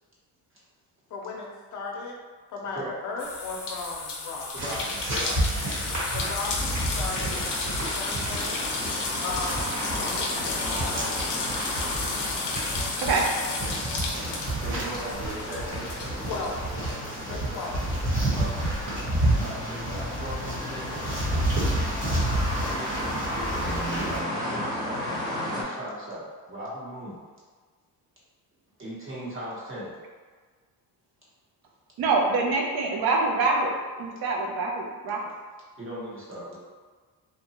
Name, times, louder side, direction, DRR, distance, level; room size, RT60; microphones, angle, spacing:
voice 1, 1.1-2.2 2.5-4.5 6.1-8.7 9.2-10.7 16.2-16.6 17.2-17.8, left 3 dB, 50° left, 0 dB, 0.5 m, -36 dB
sound 1, 3.2-17.2 17.5-18.8, left 4 dB, 90° left, 0.6 m, -33 dB
voice 2, 4.5-5.5 14.6-17.4 18.3-18.5 19.4-21.7 22.6-25.2 25.5-27.2 28.8-29.9 35.8-36.6, equal, 30° right, -7 dB, 1.0 m, -39 dB
sound 2, 4.6-24.2, right 1 dB, 50° right, 1.2 m, -30 dB
sound 3, 6.4-25.6, equal, 10° left, 0.7 m, -35 dB
voice 3, 14.7-15.0 32.0-35.2, right 3 dB, 65° right, 0 dB, 0.6 m, -25 dB
2.7 x 2.2 x 2.8 m, 1.5 s
cardioid pair, 120°, 40 cm